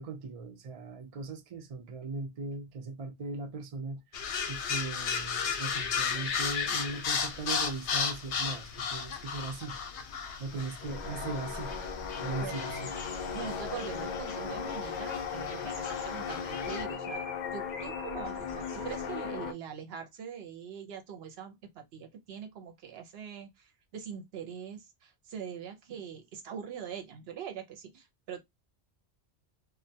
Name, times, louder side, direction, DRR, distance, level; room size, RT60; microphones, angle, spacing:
voice 1, 0.0-4.0 4.5-9.8 10.4-11.8 12.2-12.9, right 3 dB, 50° right, 0.4 m, -39 dB
sound 1, 4.1-16.8, left 6 dB, 80° left, 0.9 m, -35 dB
sound 2, 10.8-19.5, left 6 dB, 55° left, 0.6 m, -37 dB
voice 2, 13.3-17.3 17.5-28.4, right 8 dB, 70° right, 0.8 m, -43 dB
2.1 x 2.1 x 2.6 m
omnidirectional pair, 1.1 m